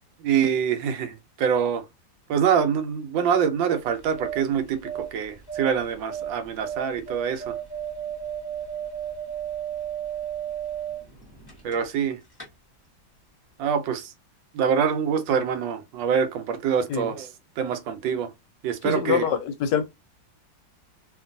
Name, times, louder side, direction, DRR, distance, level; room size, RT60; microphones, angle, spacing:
voice 1, 0.2-1.8 2.3-7.5 11.6-12.2 13.6-14.1 14.5-17.3 17.6-18.3 18.6-19.2, right 7 dB, 80° right, 1.3 m, -25 dB
sound 1, 3.8-12.0 12.3-12.5, right 9 dB, 15° left, 0.8 m, -34 dB
voice 2, 18.8-19.8, left 7 dB, 75° left, 1.1 m, -25 dB
2.9 x 2.5 x 2.5 m
omnidirectional pair, 2.1 m